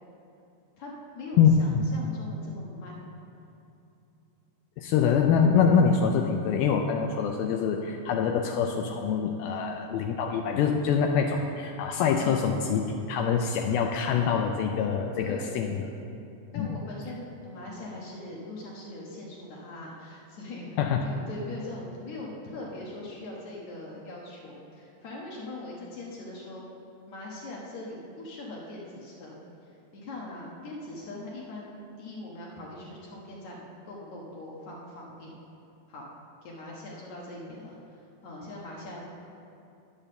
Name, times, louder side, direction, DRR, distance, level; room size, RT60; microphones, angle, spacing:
voice 1, 0.8-3.0 9.4-9.6 12.2-12.4 15.2-15.8 16.5-26.6 27.1-29.4 29.6-35.3 35.9-36.1 36.4-39.1, left 2 dB, 65° left, -3 dB, 1.8 m, -41 dB
voice 2, 1.4-1.8 4.8-15.9 16.6-16.8 20.8-21.0, left 6 dB, 90° left, 2 dB, 2.1 m, -25 dB
10.0 x 7.1 x 6.6 m, 2.7 s
omnidirectional pair, 4.9 m